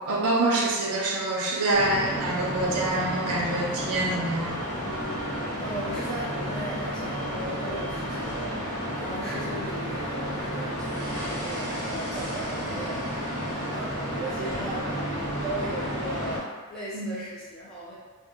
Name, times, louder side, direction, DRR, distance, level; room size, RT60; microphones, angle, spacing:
voice 1, 0.0-4.6 16.9-17.1, right 2 dB, 90° right, -2 dB, 0.5 m, -26 dB
sound 1, 1.7-16.4, equal, 30° left, 1.1 m, -31 dB
voice 2, 5.6-8.5 8.9-13.1 13.5-16.4 16.7-17.9, right 1 dB, 5° left, -11 dB, 0.6 m, -37 dB
2.3 x 2.2 x 2.9 m, 1.4 s
head